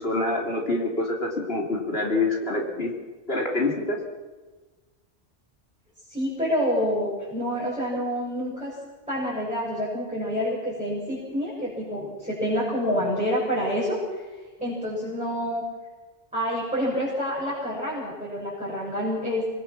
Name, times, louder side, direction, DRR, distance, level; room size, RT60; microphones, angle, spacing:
voice 1, 0.0-2.9 3.3-4.0, left 2 dB, 60° left, 0 dB, 3.6 m, -26 dB
voice 2, 6.1-8.7 9.1-14.2 14.6-15.6 16.3-19.4, equal, 5° right, -7 dB, 7.0 m, -27 dB
26.0 x 21.0 x 6.2 m, 1.3 s
omnidirectional pair, 1.2 m